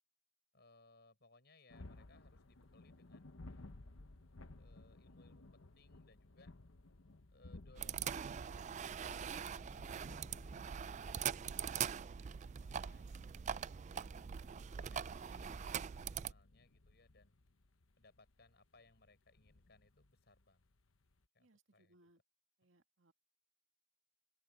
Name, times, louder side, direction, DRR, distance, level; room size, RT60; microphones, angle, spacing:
voice 1, 0.5-3.4 4.6-6.6 7.3-9.5 10.2-10.6 10.9-13.2 14.0-17.4 18.0-20.7 21.3-22.1 22.6-22.7, left 3 dB, 55° left, 7.0 m, -68 dB
sound 1, 1.7-21.2, left 2 dB, 80° left, 1.1 m, -59 dB
sound 2, 7.8-16.3, right 8 dB, 35° right, 0.3 m, -42 dB
voice 2, 21.4-22.2 22.6-23.1, right 1 dB, 70° right, 2.3 m, -70 dB
open air
head